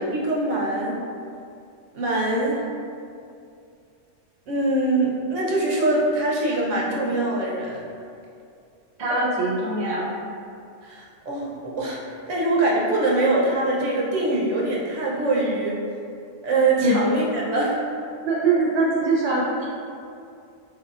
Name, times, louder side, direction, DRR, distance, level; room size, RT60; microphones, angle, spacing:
voice 1, 0.1-1.0 1.9-2.7 4.5-7.8 10.8-12.0 12.3-15.8 16.4-17.8, right 2 dB, 75° right, -4 dB, 1.0 m, -23 dB
voice 2, 9.0-10.1 16.8-17.0 18.2-19.6, right 2 dB, 30° right, -6 dB, 0.5 m, -22 dB
4.6 x 2.7 x 2.4 m, 2.4 s
omnidirectional pair, 1.3 m